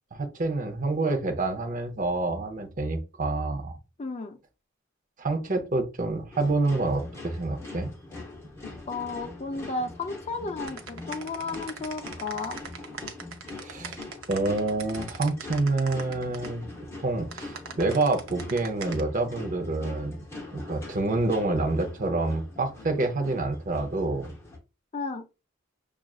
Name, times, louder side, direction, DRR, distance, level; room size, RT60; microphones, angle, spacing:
voice 1, 0.1-3.8 5.2-7.9 13.6-14.0 14.3-16.6 17.0-20.2 20.5-24.3, right 2 dB, 40° right, 0.7 m, -27 dB
voice 2, 4.0-4.4 8.9-12.6 24.9-25.3, left 3 dB, 30° left, 0.5 m, -33 dB
sound 1, 6.3-24.6, left 2 dB, 15° left, 1.0 m, -43 dB
sound 2, 10.7-16.5 17.3-19.0, right 5 dB, 80° right, 0.6 m, -40 dB
6.1 x 2.4 x 2.3 m
head